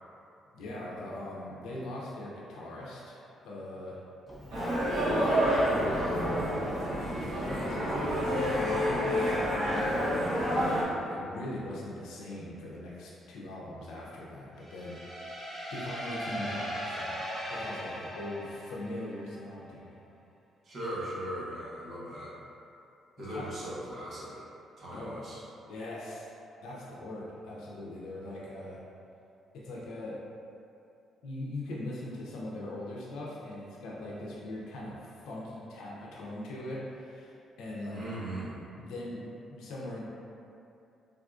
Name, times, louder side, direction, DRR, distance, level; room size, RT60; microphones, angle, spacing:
voice 1, 0.5-4.0 5.0-15.3 15.7-17.2 17.5-20.0 23.3-23.4 24.9-25.2 25.7-26.3 26.6-28.8 29.5-30.2 31.2-38.0 38.8-40.0, left 1 dB, 85° left, -5 dB, 0.5 m, -41 dB
Sliding door, 4.3-10.2, equal, 15° left, 0.5 m, -45 dB
sound 1, 4.5-10.8, equal, 80° right, 0.7 m, -28 dB
sound 2, 14.6-19.3, equal, 35° right, 1.0 m, -38 dB
voice 2, 20.6-22.3 23.2-24.3 24.8-25.4 37.9-38.6, right 1 dB, 50° right, -8 dB, 1.0 m, -38 dB
3.5 x 2.4 x 2.3 m, 2.6 s
cardioid pair, 90°, 0 cm